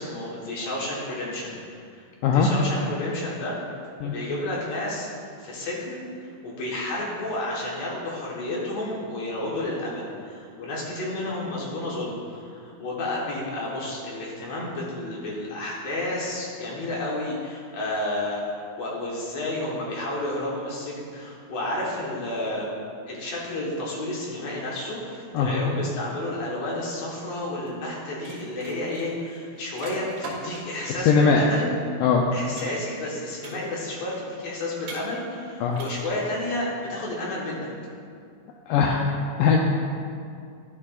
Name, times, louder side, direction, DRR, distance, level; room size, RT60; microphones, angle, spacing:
voice 1, 0.0-1.6 1.9-2.0 2.3-3.5 4.0-5.1 5.4-22.7 23.1-31.7 32.3-37.7, left 1 dB, 60° left, -5 dB, 2.1 m, -31 dB
sound 1, 27.7-27.9 28.1-30.9 32.6-33.1 33.4-34.0 34.8-35.4 35.7-36.3, right 2 dB, 80° right, 3.6 m, -41 dB
voice 2, 30.9-31.4 32.0-32.2 35.6-35.8 38.7-39.0 39.4-39.6, left 6 dB, 80° left, 0 dB, 2.0 m, -20 dB
11.5 x 8.6 x 2.4 m, 2.3 s
omnidirectional pair, 4.2 m